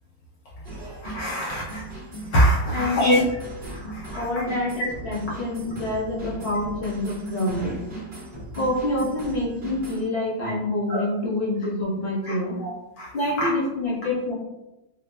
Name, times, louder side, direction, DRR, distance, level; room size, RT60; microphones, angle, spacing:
sound 1, 0.6-10.1, right 1 dB, 40° right, 0.8 m, -38 dB
voice 1, 0.7-1.8 2.1-3.2 3.7-4.2 4.8-4.9 10.9-11.0 12.2-12.3 12.6-13.1, equal, 90° left, -6 dB, 0.8 m, -24 dB
voice 2, 2.7-3.2 4.1-7.9 8.5-12.6 13.1-14.3, left 1 dB, 45° left, -7 dB, 0.7 m, -27 dB
4.5 x 2.1 x 2.2 m, 0.99 s
omnidirectional pair, 2.4 m